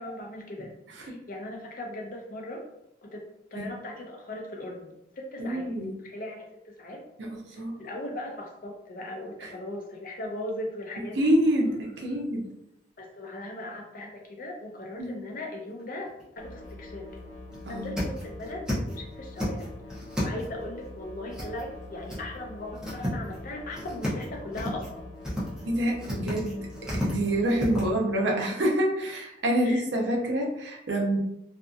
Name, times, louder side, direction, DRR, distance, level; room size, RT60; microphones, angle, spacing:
voice 1, 0.0-2.6 3.0-6.5 6.8-7.0 7.5-11.2 13.0-17.3 17.7-19.7 20.2-25.1 29.6-29.8, left 1 dB, 45° left, 0 dB, 0.5 m, -38 dB
voice 2, 5.4-5.9 7.2-7.3 7.6-7.7 9.4-9.5 11.2-12.4 15.0-15.1 17.7-17.9 21.4-21.5 25.6-31.2, right 1 dB, 75° right, 0 dB, 0.6 m, -27 dB
sound 1, 15.8-16.2 16.6-16.7 17.1-17.2 17.5-18.9 19.2-20.6 21.3-21.8 22.1-22.2 22.6-23.4 23.7-24.2 24.5-24.9 25.2-25.6 26.0-27.8, equal, 5° right, 0.7 m, -32 dB
sound 2, 16.4-27.9, left 2 dB, 85° left, 0.7 m, -44 dB
2.7 x 2.4 x 2.3 m, 0.82 s
head